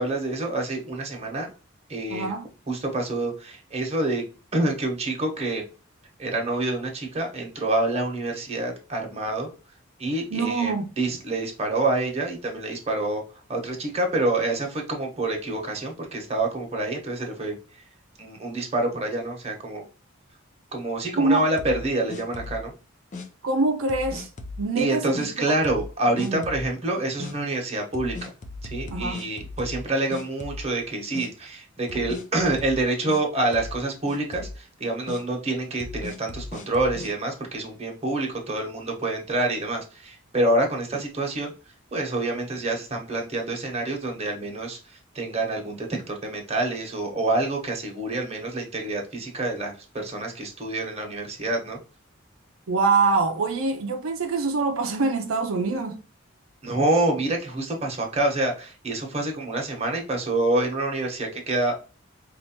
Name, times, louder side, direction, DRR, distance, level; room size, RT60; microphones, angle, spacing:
voice 1, 0.0-1.5 1.9-2.3 2.7-4.2 4.5-5.6 6.2-9.5 10.0-13.2 13.5-17.6 18.2-19.8 20.7-22.7 24.8-28.3 28.6-41.5 41.9-51.8 56.6-61.8, right 2 dB, 30° right, 1.1 m, -27 dB
voice 2, 2.1-2.5 10.3-10.9 21.2-21.4 23.4-24.3 24.6-25.1 26.2-26.4 28.9-29.2 52.7-56.0, right 3 dB, 85° right, 0.5 m, -24 dB
sound 1, 21.6-22.7 23.1-23.3 23.9-24.6 25.1-25.3 25.6-25.9 26.2-26.7 27.2-27.3 27.9-29.8 30.1-30.8 31.1-31.3 31.9-33.2 33.5-33.8 34.1-34.6 35.1-35.2 35.8-37.1, left 3 dB, 40° left, 0.5 m, -37 dB
4.3 x 2.5 x 2.8 m
head